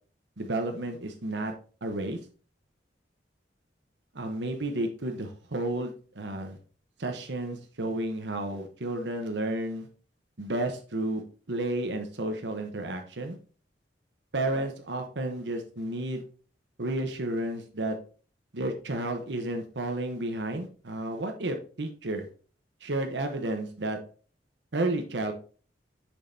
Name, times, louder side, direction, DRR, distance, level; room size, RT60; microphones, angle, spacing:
voice 1, 0.4-1.5 1.8-2.2 4.1-6.6 7.0-9.9 10.4-11.2 11.5-13.4 14.3-16.2 16.8-18.0 18.5-22.3 22.8-24.0 24.7-25.3, right 1 dB, 75° right, 4 dB, 1.0 m, -32 dB
6.5 x 6.3 x 2.7 m, 0.39 s
head